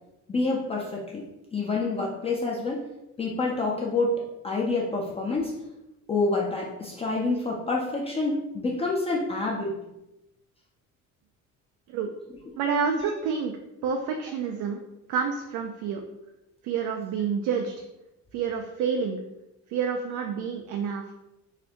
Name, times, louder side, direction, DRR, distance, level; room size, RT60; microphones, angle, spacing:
voice 1, 0.3-1.2 1.5-2.8 3.2-4.2 4.4-5.5 6.1-9.7, left 3 dB, 20° left, -2 dB, 0.4 m, -27 dB
voice 2, 12.6-13.5 13.8-14.8 15.1-16.0 16.6-17.7 18.3-19.2 19.7-21.1, right 6 dB, 80° right, 4 dB, 0.5 m, -28 dB
4.1 x 2.6 x 2.9 m, 0.94 s
cardioid pair, 145°, 29 cm